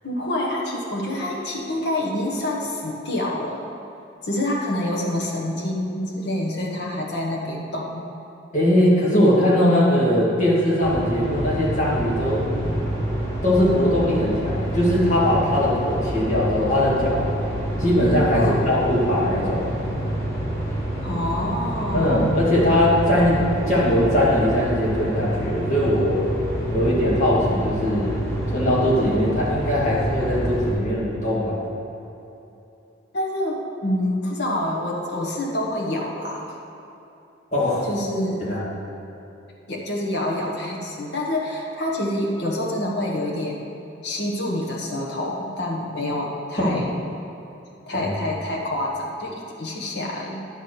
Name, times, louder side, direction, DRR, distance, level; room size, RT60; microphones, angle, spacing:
voice 1, 0.0-3.6 4.2-8.0 18.3-18.6 21.0-22.3 33.1-36.5 37.9-38.6 39.7-43.7 44.0-46.9 47.9-50.4, left 1 dB, 60° left, -2 dB, 1.2 m, -27 dB
voice 2, 8.5-12.4 13.4-17.4 17.8-19.7 21.9-23.4 23.7-26.3 26.7-28.2 28.5-31.6 37.5-37.9 38.4-38.7 46.6-46.8 47.9-48.1, left 1 dB, 40° left, -7 dB, 2.3 m, -20 dB
sound 1, 10.8-30.7, right 1 dB, 15° left, 1.8 m, -28 dB
9.9 x 4.4 x 6.7 m, 2.9 s
head